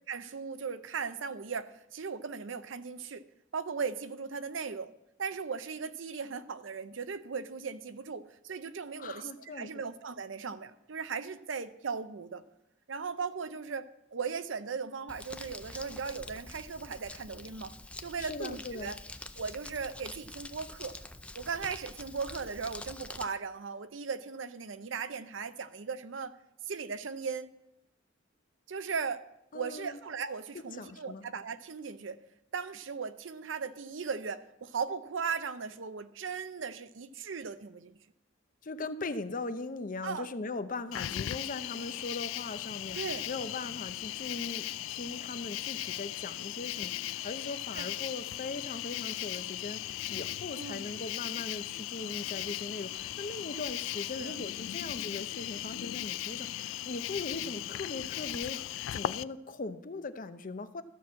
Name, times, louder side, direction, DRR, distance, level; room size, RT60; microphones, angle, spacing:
voice 1, 0.1-3.3 3.5-4.9 5.2-12.4 12.9-17.7 18.0-19.0 19.4-21.0 21.3-26.4 26.7-27.5 28.7-29.2 29.5-32.2 32.5-38.0 40.0-40.3 42.9-43.3 47.7-47.9 50.6-50.8 54.2-54.4, right 5 dB, 75° right, 12 dB, 0.6 m, -37 dB
voice 2, 9.0-9.7 18.2-18.9 29.5-30.0 30.7-31.2 38.6-43.0 43.3-58.6 58.9-60.8, left 3 dB, 45° left, 11 dB, 0.6 m, -40 dB
Crumpling crinkling, 15.1-23.2, left 2 dB, 5° left, 0.4 m, -46 dB
Cricket, 40.9-59.2, left 13 dB, 90° left, 0.3 m, -37 dB
13.0 x 6.0 x 7.4 m, 0.85 s
head